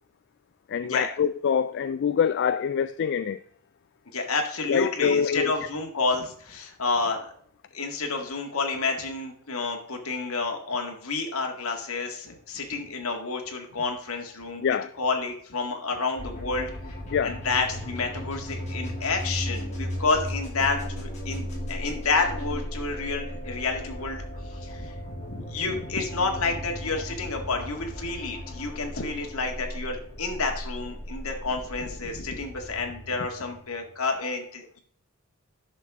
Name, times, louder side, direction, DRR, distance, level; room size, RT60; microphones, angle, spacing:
voice 1, 0.7-3.4 4.7-5.5 14.6-14.9 17.1-17.4, left 7 dB, 50° left, 0.3 m, -25 dB
voice 2, 4.1-7.3 7.7-16.7 17.2-24.2 24.5-34.8, left 3 dB, 70° left, 1.9 m, -30 dB
sound 1, 16.2-33.9, equal, 30° left, 2.9 m, -36 dB
10.0 x 6.5 x 3.6 m
head